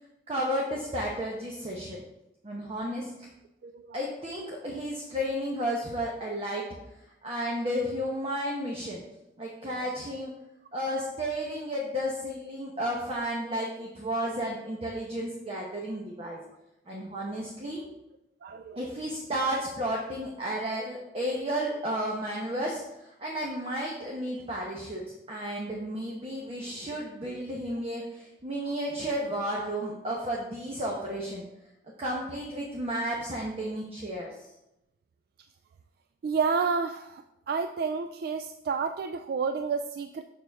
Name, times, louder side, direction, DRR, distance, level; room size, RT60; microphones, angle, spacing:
voice 1, 0.3-2.0 2.4-3.1 3.9-6.7 7.2-9.0 9.4-10.3 10.7-16.4 16.9-17.8 18.8-31.4 32.0-34.3, equal, 35° right, -2 dB, 1.0 m, -32 dB
voice 2, 3.6-4.0 18.4-18.8 36.2-40.2, right 5 dB, 60° right, 8 dB, 0.3 m, -30 dB
6.7 x 6.4 x 3.5 m, 0.88 s
head